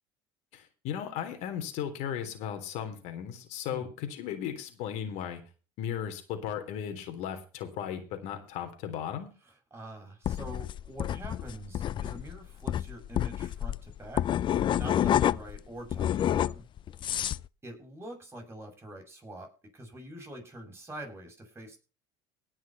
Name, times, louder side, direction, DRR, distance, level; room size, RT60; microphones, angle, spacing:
voice 1, 0.5-5.4 5.8-9.3, left 9 dB, 70° left, 7 dB, 3.5 m, -36 dB
voice 2, 9.7-14.2 14.8-16.7 17.6-21.8, right 1 dB, 20° right, 2 dB, 7.1 m, -45 dB
sound 1, 10.3-15.6 15.9-17.5, left 11 dB, 40° left, 0.5 m, -28 dB
18.0 x 6.3 x 5.7 m, 0.34 s
supercardioid pair, 90°, 12 cm